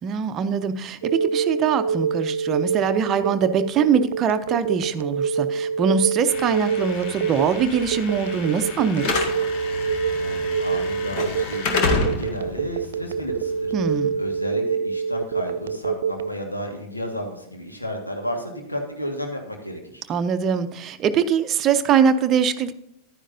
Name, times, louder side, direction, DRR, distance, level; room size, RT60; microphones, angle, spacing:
voice 1, 0.0-9.1 13.7-14.2 20.1-22.7, right 7 dB, 30° right, 10 dB, 0.7 m, -22 dB
Telephone, 1.0-16.3, right 6 dB, 60° right, 0.3 m, -25 dB
Slam / Alarm, 6.3-14.3, left 3 dB, 45° left, 1.6 m, -30 dB
voice 2, 10.1-13.7 14.2-20.0, equal, 85° left, 3 dB, 1.8 m, -32 dB
11.0 x 9.9 x 2.7 m, 0.81 s
figure-of-eight pair, 90°, 0 cm